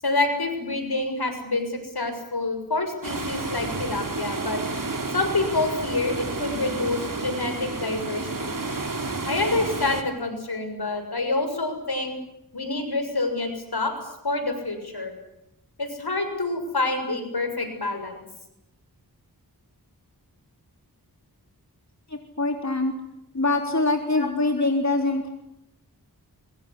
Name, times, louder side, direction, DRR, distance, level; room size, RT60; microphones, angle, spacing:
voice 1, 0.0-4.6 5.1-8.6 9.3-12.1 12.5-13.9 14.2-15.1 15.8-18.1 24.2-24.3, left 2 dB, 80° left, 6 dB, 6.8 m, -27 dB
sound 1, 3.0-10.0, right 3 dB, 55° right, 3.3 m, -31 dB
voice 2, 22.1-22.9 23.3-25.3, left 2 dB, 45° left, 4 dB, 3.9 m, -24 dB
25.0 x 23.0 x 10.0 m, 0.85 s
wide cardioid pair, 45°, 38 cm